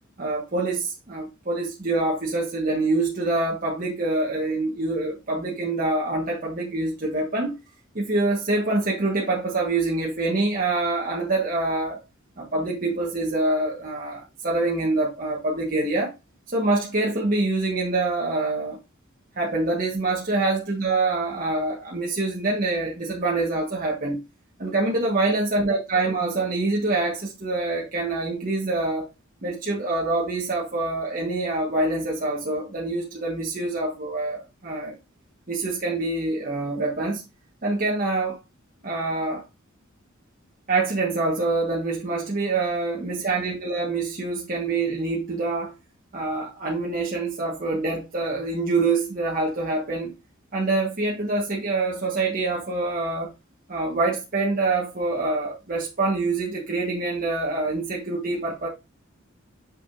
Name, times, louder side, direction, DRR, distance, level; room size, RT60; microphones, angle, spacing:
voice 1, 0.2-7.6 7.9-12.0 12.4-16.1 16.5-18.8 19.3-24.2 24.6-29.1 29.4-34.9 35.5-37.2 37.6-38.4 38.8-39.4 40.7-45.7 46.1-50.1 50.5-53.3 53.7-58.7, right 2 dB, 40° right, 1.4 m, -25 dB
6.5 x 6.0 x 2.6 m
head